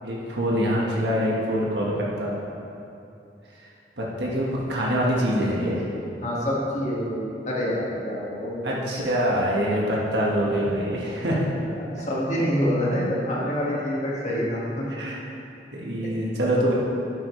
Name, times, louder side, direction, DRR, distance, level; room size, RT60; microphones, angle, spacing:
voice 1, 0.0-2.3 4.0-5.9 8.6-11.4 12.9-13.0 14.9-15.2 15.7-16.7, equal, 80° right, -4 dB, 1.5 m, -25 dB
voice 2, 6.2-8.8 11.7-14.9 16.0-16.1, equal, 40° left, -5 dB, 1.8 m, -27 dB
10.0 x 8.0 x 3.2 m, 2.7 s
head